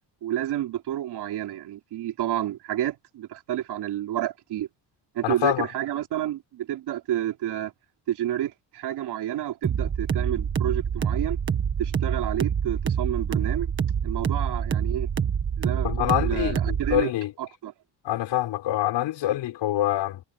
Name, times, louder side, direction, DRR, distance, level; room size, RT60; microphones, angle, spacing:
voice 1, 0.2-4.7 5.2-7.7 8.1-11.4 11.8-13.7 14.0-15.1 15.6-17.1 17.4-17.7, right 12 dB, 65° right, 3.4 m, -30 dB
voice 2, 5.2-5.7 15.8-17.3 18.0-20.2, left 14 dB, 85° left, 6.2 m, -25 dB
sound 1, 9.6-17.0, right 7 dB, 30° right, 1.4 m, -26 dB
cardioid pair, 175°, 43 cm